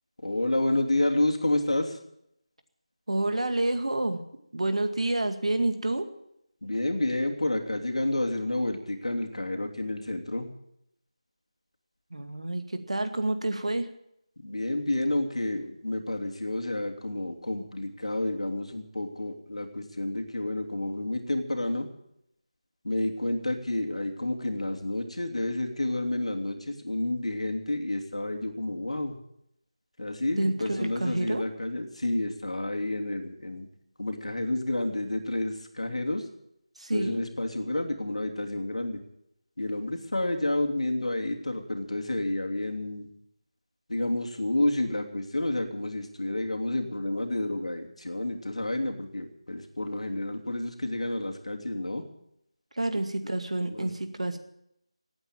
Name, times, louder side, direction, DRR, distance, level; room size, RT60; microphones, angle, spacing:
voice 1, 0.2-2.0 6.6-10.5 14.4-21.9 22.8-29.1 30.0-33.7 34.0-36.3 36.9-39.0 39.6-43.1 43.9-52.0 52.9-53.0 53.7-53.9, left 1 dB, 80° left, 3 dB, 3.0 m, -30 dB
voice 2, 3.1-4.2 4.5-6.1 12.1-13.9 30.4-31.4 36.8-37.2 52.8-54.4, right 2 dB, 80° right, 7 dB, 2.2 m, -28 dB
16.5 x 9.0 x 9.0 m, 0.77 s
figure-of-eight pair, 170°, 3 cm